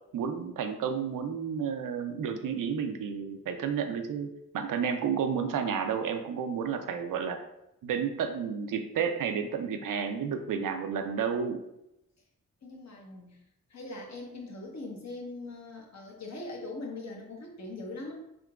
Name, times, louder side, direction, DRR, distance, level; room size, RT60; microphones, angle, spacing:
voice 1, 0.1-7.4 7.8-11.6, right 7 dB, 70° right, 6 dB, 0.5 m, -31 dB
voice 2, 12.6-13.4 13.7-18.1, left 2 dB, 55° left, 0 dB, 0.9 m, -41 dB
3.6 x 2.8 x 2.3 m, 0.85 s
supercardioid pair, 45°, 33 cm